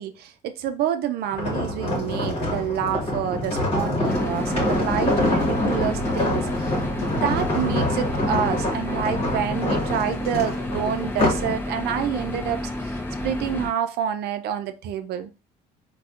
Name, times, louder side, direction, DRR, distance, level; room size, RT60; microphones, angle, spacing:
voice 1, 0.0-13.0 13.2-15.3, right 9 dB, 75° right, 0.5 m, -28 dB
sound 1, 1.3-11.5 12.0-12.3, left 1 dB, 35° left, 1.2 m, -25 dB
sound 2, 4.1-13.7, left 1 dB, 15° left, 0.5 m, -31 dB
4.1 x 2.3 x 2.4 m
cardioid pair, 110°, 17 cm